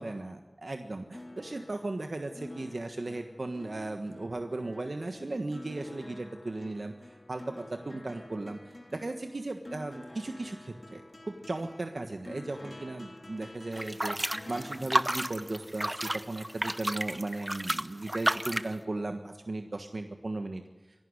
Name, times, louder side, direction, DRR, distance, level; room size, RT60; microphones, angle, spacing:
voice 1, 0.0-20.6, right 2 dB, 65° right, 5 dB, 1.4 m, -36 dB
sound 1, 1.1-16.0 17.3-17.4, left 1 dB, 45° left, 3.8 m, -49 dB
sound 2, 13.7-18.7, right 1 dB, 20° right, 0.8 m, -31 dB
25.5 x 11.5 x 9.8 m, 1.3 s
wide cardioid pair, 55°, 0 cm